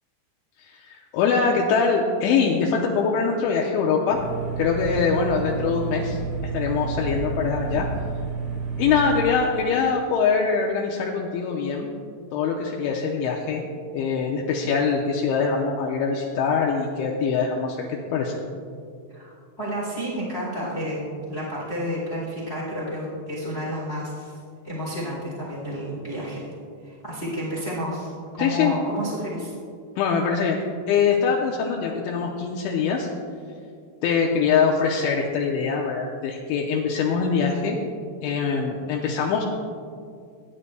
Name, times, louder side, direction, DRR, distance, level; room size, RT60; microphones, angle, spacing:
voice 1, 0.6-4.2 4.6-7.9 8.8-11.9 12.3-13.6 13.9-18.4 28.4-28.7 30.0-30.6 30.9-33.1 34.0-37.8 38.2-39.4, left 5 dB, 80° left, -1 dB, 2.9 m, -23 dB
sound 1, 4.1-9.3, right 5 dB, 65° right, 1.6 m, -30 dB
voice 2, 19.1-24.4 24.6-26.4 26.8-29.5, equal, 50° left, -6 dB, 0.7 m, -31 dB
21.5 x 9.8 x 2.2 m, 2.3 s
omnidirectional pair, 5.9 m